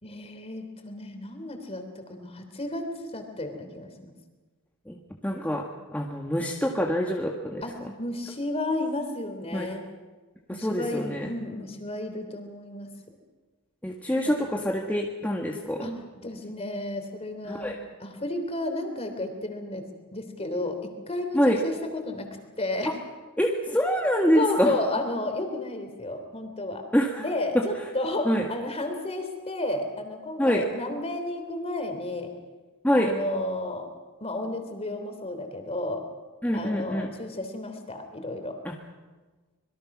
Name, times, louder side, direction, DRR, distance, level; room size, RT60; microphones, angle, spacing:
voice 1, 0.0-4.1 7.6-7.7 8.0-9.8 10.5-12.9 14.3-14.4 15.8-15.9 16.2-19.8 20.1-22.3 22.6-22.9 24.3-26.8 27.2-32.3 32.9-33.9 34.2-36.0 36.5-38.6, left 2 dB, 30° left, 6 dB, 3.3 m, -32 dB
voice 2, 5.2-7.9 9.5-9.7 10.5-11.3 13.8-15.9 17.4-17.8 21.3-21.6 22.8-22.9 23.4-24.7 26.9-27.3 27.5-27.6 28.2-28.5 30.4-30.6 32.8-33.1 36.4-37.1 38.6-38.7, equal, 5° left, 0 dB, 1.6 m, -25 dB
25.5 x 22.5 x 6.1 m, 1.3 s
head